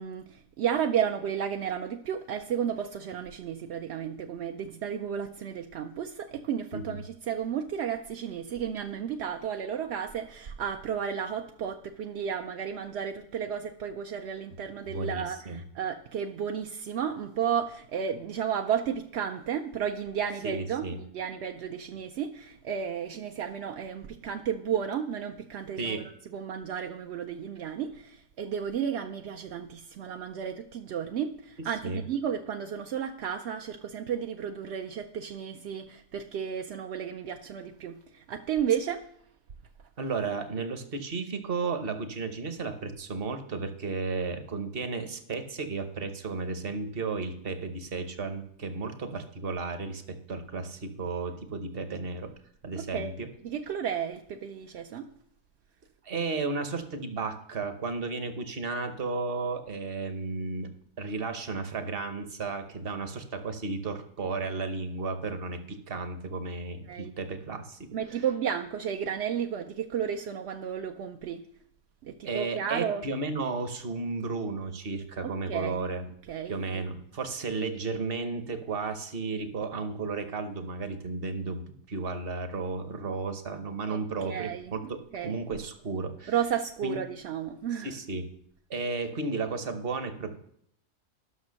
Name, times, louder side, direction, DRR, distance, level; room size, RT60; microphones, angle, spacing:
voice 1, 0.0-39.1 52.8-53.2 53.4-55.1 66.8-67.1 67.9-71.4 72.0-73.1 75.2-75.8 76.2-76.8 83.9-85.4 86.3-88.0, right 8 dB, 65° right, 4 dB, 0.7 m, -33 dB
voice 2, 14.8-15.6 20.4-21.0 25.8-26.0 31.8-32.0 40.0-52.3 52.6-53.3 56.0-60.7 61.0-68.2 72.2-76.0 76.5-81.6 81.9-86.3 86.8-87.0 87.8-88.3 88.7-90.4, right 4 dB, 45° right, 8 dB, 1.1 m, -33 dB
11.5 x 6.1 x 6.3 m, 0.70 s
omnidirectional pair, 1.6 m